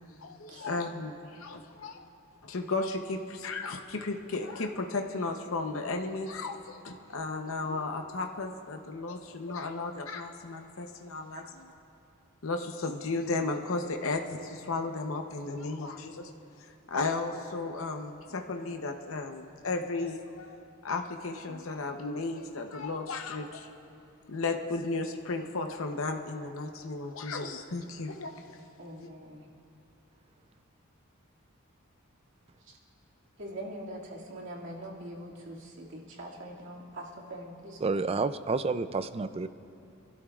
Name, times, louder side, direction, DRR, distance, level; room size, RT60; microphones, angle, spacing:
voice 1, 0.2-2.0 2.4-11.4 12.4-16.3 16.9-20.6 20.8-23.7 24.2-28.6 29.0-29.1, left 3 dB, 70° left, 4 dB, 0.8 m, -34 dB
voice 2, 28.8-29.5 32.6-32.8 33.4-38.2, right 1 dB, 60° right, -3 dB, 2.3 m, -43 dB
voice 3, 37.8-39.5, right 4 dB, 30° right, 12 dB, 0.4 m, -29 dB
28.0 x 12.0 x 2.4 m, 2.6 s
head